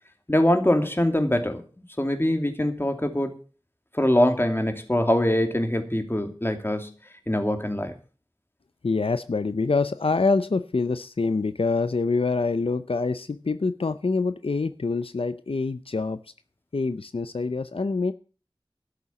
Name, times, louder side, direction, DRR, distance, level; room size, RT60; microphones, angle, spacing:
voice 1, 0.3-3.3 3.9-6.9 7.3-7.9, left 1 dB, 25° left, 2.6 m, -23 dB
voice 2, 8.8-16.2 16.7-18.1, left 3 dB, 90° left, 0.6 m, -25 dB
13.0 x 7.0 x 8.4 m
wide cardioid pair, 40°, 9 cm